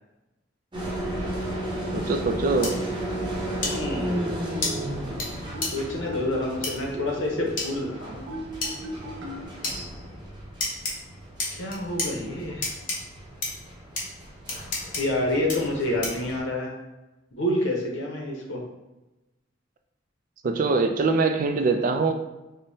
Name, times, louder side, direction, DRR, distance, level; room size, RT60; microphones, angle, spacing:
sound 1, 0.7-16.4, right 1 dB, 25° right, 0.8 m, -34 dB
voice 1, 1.9-2.8 20.4-22.1, right 3 dB, 45° right, 6 dB, 0.3 m, -23 dB
sound 2, 2.6-2.7 3.6-3.7 4.6-4.7 5.2-5.3 5.6-5.7 6.6-6.7 7.6-7.7 8.6-8.7 9.6-9.8 10.6-10.9 11.4-12.1 12.6-13.0 13.4-13.5 14.0-14.1 14.5-15.0 15.5-15.6 16.0-16.2, left 3 dB, 45° left, 0.8 m, -28 dB
voice 2, 3.6-4.1 5.7-8.3 11.5-12.7 14.9-16.7 17.3-18.6, left 1 dB, 80° left, 0 dB, 0.8 m, -28 dB
sound 3, 4.1-5.1 5.5-8.0 8.3-9.5, right 1 dB, 90° right, 0.9 m, -39 dB
5.1 x 2.1 x 2.7 m, 1.0 s
head